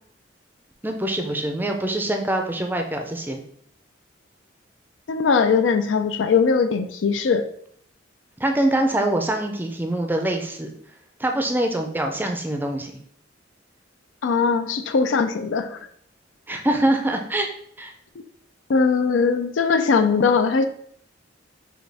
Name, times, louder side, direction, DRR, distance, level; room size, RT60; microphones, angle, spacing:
voice 1, 0.8-3.4 8.4-10.7 11.2-12.9 16.5-17.5 17.8-17.9, right 1 dB, 10° right, 4 dB, 0.5 m, -24 dB
voice 2, 5.1-7.5 14.2-15.8 18.7-20.7, left 5 dB, 80° left, 9 dB, 0.4 m, -20 dB
6.2 x 2.4 x 3.4 m, 0.64 s
head